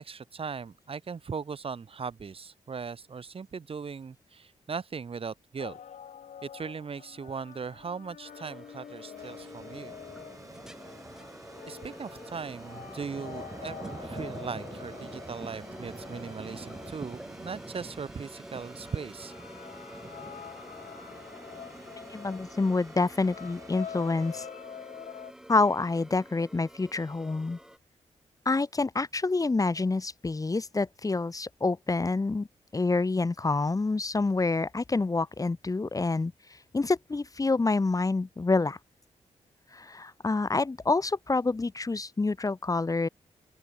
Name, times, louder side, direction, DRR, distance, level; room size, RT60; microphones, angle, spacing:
voice 1, 0.0-5.8 6.4-9.9 11.7-19.3, right 5 dB, 50° right, 3.6 m, -39 dB
sound 1, 5.6-18.1 18.8-25.3, left 8 dB, 80° left, 6.7 m, -46 dB
sound 2, 8.2-27.8, equal, 5° right, 7.3 m, -48 dB
sound 3, 9.2-24.5, right 3 dB, 25° right, 5.5 m, -47 dB
voice 2, 22.1-24.5 25.5-27.6 28.5-32.5 32.7-36.3 36.7-38.8 39.7-43.1, left 3 dB, 30° left, 3.7 m, -27 dB
open air
cardioid pair, 90°, 12 cm